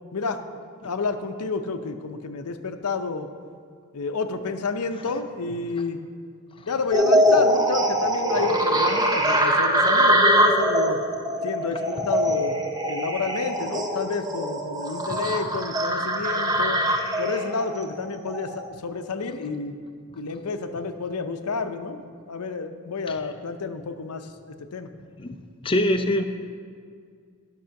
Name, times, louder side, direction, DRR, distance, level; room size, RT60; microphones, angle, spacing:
voice 1, 0.1-0.4 0.8-3.3 3.9-6.0 6.7-11.0 11.4-16.8 17.2-19.7 20.2-24.9, left 4 dB, 90° left, 8 dB, 0.6 m, -30 dB
sound 1, 6.9-18.7, equal, 20° right, 0.8 m, -22 dB
voice 2, 25.6-26.2, left 1 dB, 25° left, 5 dB, 0.5 m, -22 dB
11.5 x 6.2 x 5.8 m, 2.1 s
head